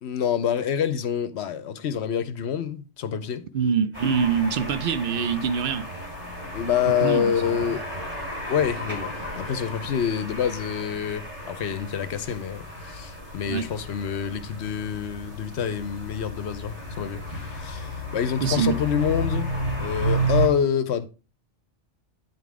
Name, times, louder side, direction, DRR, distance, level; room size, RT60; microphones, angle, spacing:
voice 1, 0.0-3.5 6.5-7.9 8.5-21.1, left 8 dB, 70° left, 0.9 m, -27 dB
voice 2, 3.5-5.9 6.9-7.6 13.5-13.7 18.4-18.8, right 6 dB, 60° right, 0.6 m, -25 dB
sound 1, 3.9-20.5, right 1 dB, 40° right, 2.6 m, -32 dB
9.3 x 3.8 x 4.7 m
omnidirectional pair, 1.2 m